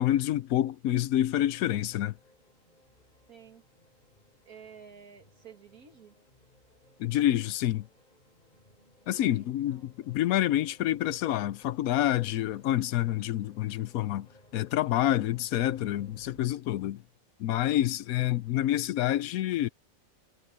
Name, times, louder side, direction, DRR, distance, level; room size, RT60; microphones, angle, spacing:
voice 1, 0.0-2.1 7.0-7.9 9.1-14.3 14.5-17.0 17.4-19.7, left 13 dB, 80° left, 1.1 m, -27 dB
sound 1, 1.4-16.5, left 1 dB, 30° left, 4.5 m, -61 dB
voice 2, 3.3-3.6 4.5-6.1 9.2-9.9 15.1-15.4, right 6 dB, 85° right, 2.6 m, -52 dB
omnidirectional pair, 1.5 m